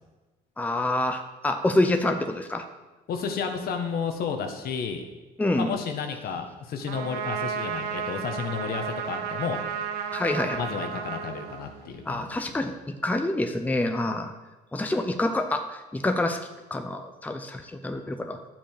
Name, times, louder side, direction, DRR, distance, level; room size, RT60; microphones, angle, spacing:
voice 1, 0.6-2.6 5.4-5.7 10.1-10.6 12.1-14.3 14.7-16.4 16.7-18.4, left 2 dB, 10° left, 6 dB, 0.8 m, -27 dB
voice 2, 3.1-5.0 5.6-9.6 10.6-12.7, left 6 dB, 65° left, 5 dB, 1.5 m, -32 dB
Trumpet, 6.9-12.1, right 7 dB, 85° right, 1.2 m, -33 dB
12.0 x 7.6 x 5.0 m, 1.2 s
cardioid pair, 110°, 17 cm